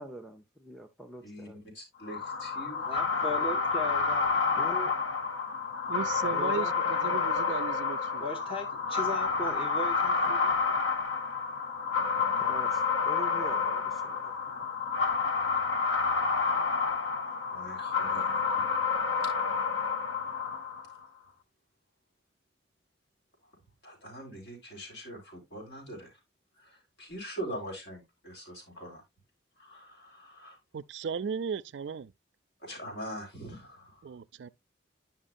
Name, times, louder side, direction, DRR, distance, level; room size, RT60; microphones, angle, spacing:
voice 1, 0.0-1.6 4.6-4.9 6.3-7.2 12.4-14.7, equal, ahead, 0.6 m, -44 dB
voice 2, 1.2-2.8 3.1-3.7 10.1-10.3 17.4-18.8 23.8-26.1 26.6-29.0 29.6-30.6 32.6-34.1, equal, 70° left, 3.9 m, -43 dB
sound 1, 2.1-21.0, left 5 dB, 90° left, 0.8 m, -29 dB
voice 3, 2.9-4.7 8.2-10.5, left 1 dB, 30° left, 0.9 m, -38 dB
voice 4, 5.9-8.2 30.7-32.1 34.0-34.5, right 6 dB, 65° right, 0.4 m, -36 dB
9.9 x 5.7 x 2.5 m
head